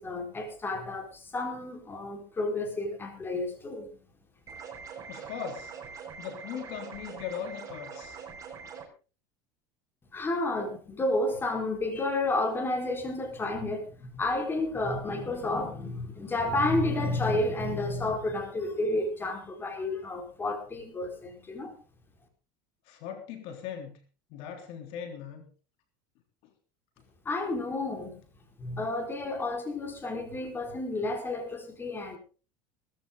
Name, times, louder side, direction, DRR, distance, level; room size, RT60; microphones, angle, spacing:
voice 1, 0.0-3.9 10.1-21.8 27.2-28.2 28.6-32.2, left 2 dB, 20° left, 4 dB, 4.9 m, -31 dB
sound 1, 4.5-8.9, right 6 dB, 30° right, 6.3 m, -43 dB
voice 2, 5.1-5.7 6.2-8.2 22.9-24.0 24.3-25.4, left 8 dB, 65° left, 6 dB, 3.6 m, -39 dB
18.0 x 14.5 x 4.0 m, 0.37 s
supercardioid pair, 115°, 11 cm